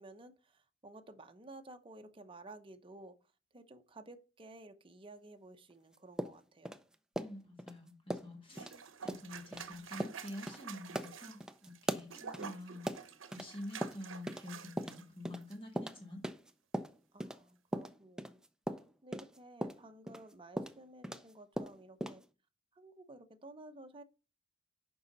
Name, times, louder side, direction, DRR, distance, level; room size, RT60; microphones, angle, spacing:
voice 1, 0.0-3.2 3.5-6.8 17.1-18.4 19.0-22.2 22.7-24.0, right 2 dB, 25° right, 0.8 m, -54 dB
sound 1, 6.2-7.7 8.1-8.3 8.6-8.7 9.1-9.2 9.5-9.7 10.0-10.2 10.5-10.6 10.9-13.5 13.8-14.5 14.8-17.4 17.7-21.3 21.6-22.2, right 1 dB, 5° right, 0.5 m, -39 dB
voice 2, 7.2-8.7 9.0-16.2, left 1 dB, 25° left, 1.4 m, -48 dB
sound 2, 8.5-15.0 15.4-15.6, right 6 dB, 85° right, 0.8 m, -49 dB
6.8 x 5.5 x 5.3 m
head